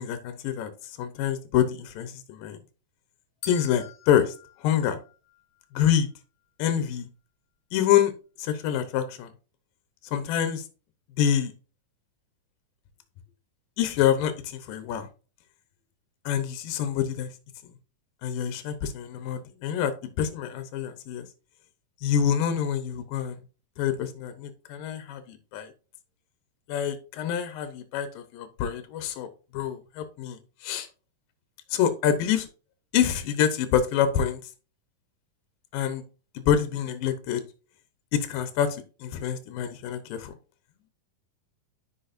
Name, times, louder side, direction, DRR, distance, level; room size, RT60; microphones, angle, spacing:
voice 1, 0.0-2.6 3.5-5.0 5.7-6.1 6.6-7.1 7.7-8.1 8.4-9.3 10.0-10.6 11.2-11.5 13.8-15.1 16.3-17.3 18.2-21.3 22.0-23.4 23.8-25.7 26.7-29.3 29.5-30.9 31.7-32.5 32.9-34.4 35.7-36.0 36.4-37.4 38.1-40.3, left 9 dB, 80° left, 10 dB, 2.6 m, -26 dB
sound 1, 3.4-5.7, left 8 dB, 60° left, 1.6 m, -46 dB
10.0 x 6.0 x 2.6 m, 0.34 s
omnidirectional pair, 4.0 m